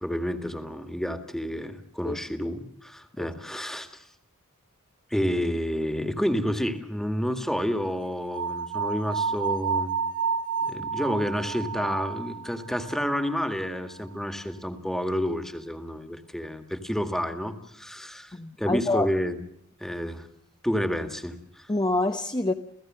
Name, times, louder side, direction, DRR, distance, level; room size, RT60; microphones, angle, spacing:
voice 1, 0.0-4.0 5.1-10.0 10.6-19.4 19.8-20.3 20.6-21.7, equal, ahead, 1.9 m, -30 dB
sound 1, 8.3-13.4, right 6 dB, 85° right, 2.0 m, -30 dB
voice 2, 18.3-19.1 21.7-22.5, left 2 dB, 20° left, 0.9 m, -26 dB
29.5 x 16.5 x 7.6 m
head